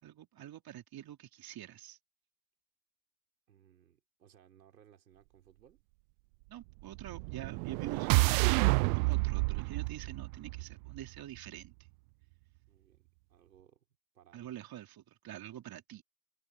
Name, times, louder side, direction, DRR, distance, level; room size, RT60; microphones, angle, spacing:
voice 1, 0.0-2.0 6.5-11.7 14.3-16.0, right 12 dB, 45° right, 3.8 m, -47 dB
voice 2, 3.5-5.8 12.7-13.9 14.1-14.6, right 10 dB, 90° right, 5.2 m, -63 dB
sound 1, 6.9-11.2, right 30 dB, 65° right, 0.6 m, -29 dB
hypercardioid pair, 70°, 49 cm